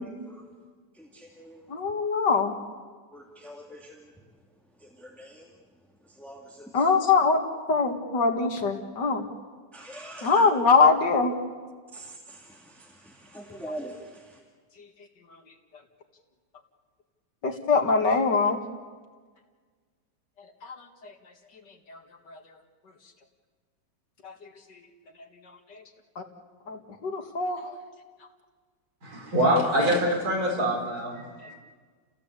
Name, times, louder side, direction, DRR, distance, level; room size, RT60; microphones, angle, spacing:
voice 1, 1.1-1.6 3.1-3.9 5.0-5.4 6.2-6.4 9.7-10.3 11.9-12.6 13.3-14.0, right 1 dB, ahead, -1 dB, 2.5 m, -42 dB
voice 2, 1.7-2.6 6.7-7.4 7.7-9.3 10.2-11.3 14.8-14.9 15.3-15.4 17.4-18.6 20.6-21.2 21.7-22.0 22.3-22.6 24.2-24.9 25.4-25.8 26.2-26.3 26.7-27.8, left 4 dB, 80° left, 4 dB, 2.7 m, -24 dB
voice 3, 29.0-31.5, equal, 55° right, -1 dB, 4.8 m, -25 dB
30.0 x 16.5 x 8.3 m, 1.5 s
omnidirectional pair, 1.8 m